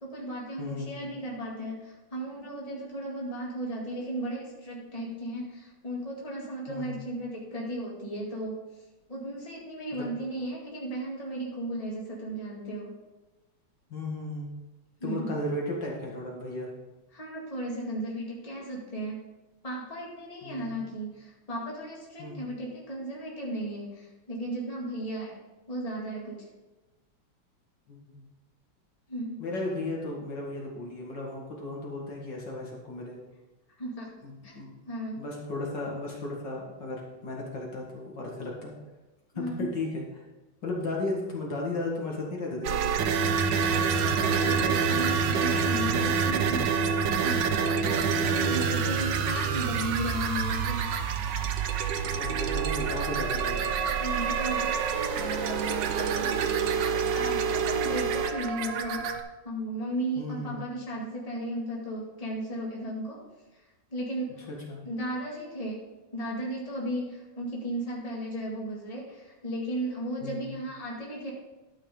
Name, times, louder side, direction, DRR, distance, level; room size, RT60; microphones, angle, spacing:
voice 1, 0.0-8.6 9.1-12.9 15.0-15.3 17.1-19.2 19.6-25.4 25.7-26.5 29.1-29.4 33.8-34.1 34.4-35.2 39.3-39.7 43.8-47.0 47.2-50.9 54.0-59.1 59.4-63.2 63.5-63.6 63.9-64.3 64.8-65.8 66.1-71.3, right 1 dB, 20° left, -3 dB, 2.1 m, -35 dB
voice 2, 0.6-1.1 6.7-7.0 9.9-10.0 13.9-14.5 15.0-16.7 20.4-20.8 22.2-22.5 27.9-28.2 29.4-33.2 34.2-34.7 35.2-38.7 39.4-40.0 40.6-42.9 52.1-53.7 60.2-60.6 64.7-64.8 70.2-70.5, left 2 dB, 65° left, -2 dB, 2.4 m, -35 dB
sound 1, 42.6-59.2, right 6 dB, 70° right, 1.4 m, -27 dB
12.0 x 5.7 x 5.1 m, 1.1 s
omnidirectional pair, 2.1 m